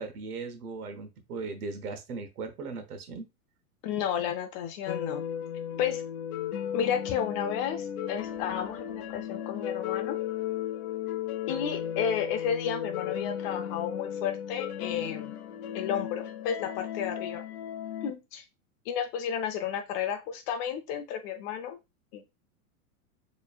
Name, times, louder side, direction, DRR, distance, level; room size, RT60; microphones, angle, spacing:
voice 1, 0.0-3.3 5.7-5.8, right 4 dB, 85° right, 7 dB, 1.1 m, -38 dB
voice 2, 3.8-5.2 5.8-6.0 6.7-10.2 11.5-15.4 15.7-17.4 18.0-18.4 18.9-21.8 22.1-22.2, left 8 dB, 45° left, 7 dB, 0.6 m, -32 dB
sound 1, 4.9-18.1, left 10 dB, 85° left, 0.6 m, -35 dB
4.3 x 3.1 x 2.3 m, 0.24 s
hypercardioid pair, 115°, 44 cm